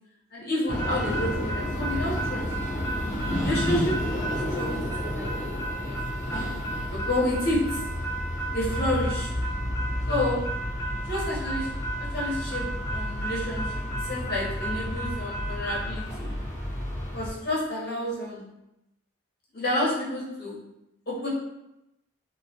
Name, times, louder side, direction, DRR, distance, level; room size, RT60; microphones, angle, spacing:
voice 1, 0.3-2.5 3.4-4.1 4.5-5.4 5.8-6.0 6.9-7.8 8.5-9.3 10.1-10.4 11.1-11.7 12.0-12.6 12.9-16.3 17.1-18.4 19.5-20.6 21.1-21.3, left 1 dB, 50° left, -6 dB, 0.7 m, -29 dB
sound 1, 0.7-17.3, equal, 15° left, 0.5 m, -30 dB
2.2 x 2.1 x 2.7 m, 0.86 s
head